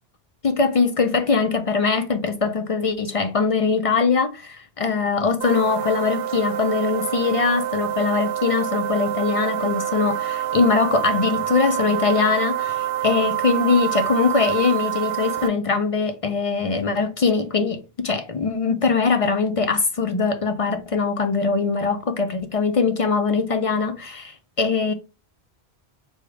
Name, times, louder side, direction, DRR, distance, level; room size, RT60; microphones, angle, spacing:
voice 1, 0.4-24.9, left 4 dB, 60° left, 0.3 m, -22 dB
sound 1, 5.4-15.5, right 12 dB, 80° right, 0.9 m, -27 dB
4.9 x 2.1 x 4.7 m
omnidirectional pair, 1.1 m